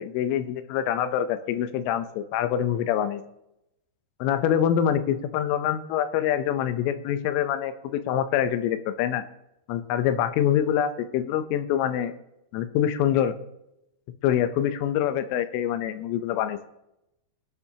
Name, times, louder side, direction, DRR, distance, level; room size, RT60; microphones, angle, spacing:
voice 1, 0.0-3.2 4.2-9.2 9.7-12.1 12.5-13.3 14.2-16.6, left 10 dB, 85° left, 10 dB, 3.4 m, -25 dB
23.0 x 11.5 x 2.9 m, 0.84 s
omnidirectional pair, 5.6 m